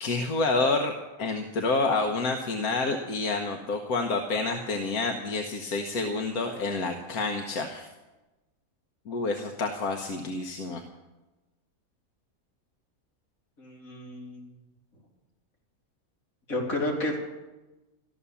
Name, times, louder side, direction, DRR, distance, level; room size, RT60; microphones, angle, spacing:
voice 1, 0.0-0.9 1.2-7.9 9.1-10.8, left 3 dB, 90° left, 4 dB, 1.6 m, -28 dB
voice 2, 13.6-14.5 16.5-17.2, left 1 dB, 70° left, -1 dB, 3.5 m, -31 dB
14.0 x 12.5 x 7.0 m, 1.1 s
omnidirectional pair, 1.5 m